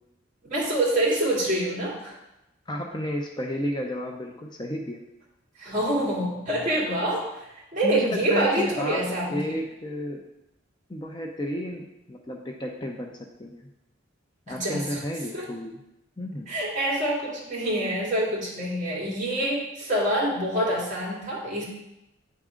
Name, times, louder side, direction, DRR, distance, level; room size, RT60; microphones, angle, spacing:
voice 1, 0.5-2.1 5.6-9.6 14.5-15.0 15.3-15.4 16.5-21.6, right 1 dB, 40° right, -6 dB, 2.4 m, -26 dB
voice 2, 2.7-5.0 7.8-10.2 10.9-13.7 14.5-15.8 16.2-16.5, left 1 dB, 20° left, 1 dB, 0.5 m, -32 dB
8.7 x 3.6 x 5.0 m, 0.91 s
head